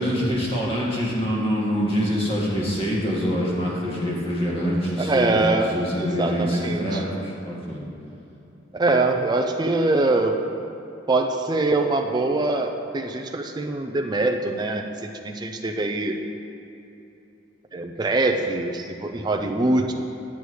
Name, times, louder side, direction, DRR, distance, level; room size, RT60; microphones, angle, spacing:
voice 1, 0.0-5.4 5.7-7.8, equal, 30° left, -5 dB, 1.7 m, -25 dB
voice 2, 5.0-7.0 8.8-10.4 11.1-16.2 17.7-19.9, right 2 dB, 20° right, 3 dB, 0.3 m, -23 dB
9.7 x 8.2 x 3.1 m, 2.8 s
head